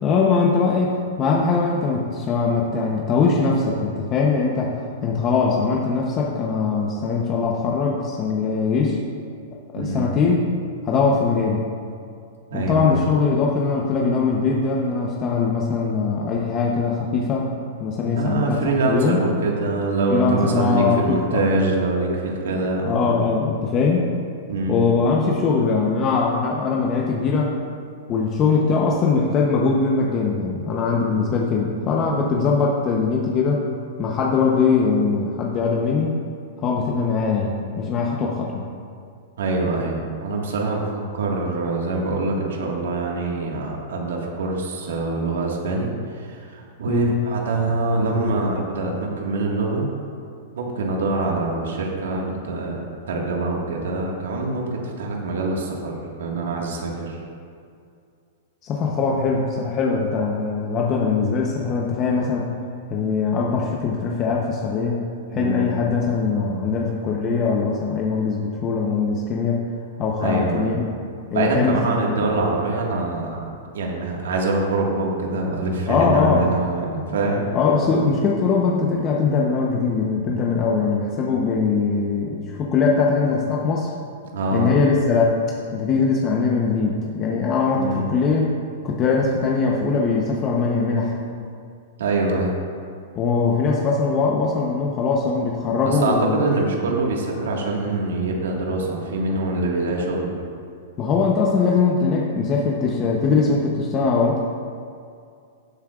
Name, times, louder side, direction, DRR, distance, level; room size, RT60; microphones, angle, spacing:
voice 1, 0.0-9.0 9.7-10.4 10.8-11.6 12.5-17.5 17.8-19.2 20.1-21.5 22.9-24.0 24.7-27.5 28.1-33.6 34.0-36.2 36.6-38.6 46.9-47.1 58.6-62.5 62.9-65.0 65.3-69.6 70.0-70.9 71.3-71.9 75.9-76.5 77.5-83.9 84.5-85.4 85.7-88.5 88.8-91.2 93.1-96.5 101.0-104.4, left 4 dB, 25° left, -2 dB, 0.8 m, -21 dB
voice 2, 9.7-10.1 12.5-13.0 18.1-23.2 24.5-24.8 31.1-31.2 39.4-49.9 50.5-57.2 65.3-65.7 70.2-70.8 71.3-73.5 73.7-77.5 84.3-84.7 87.7-88.1 92.0-92.5 95.8-100.4, right 2 dB, 90° right, -1 dB, 1.7 m, -24 dB
15.5 x 8.4 x 2.5 m, 2.3 s
supercardioid pair, 165°, 0 cm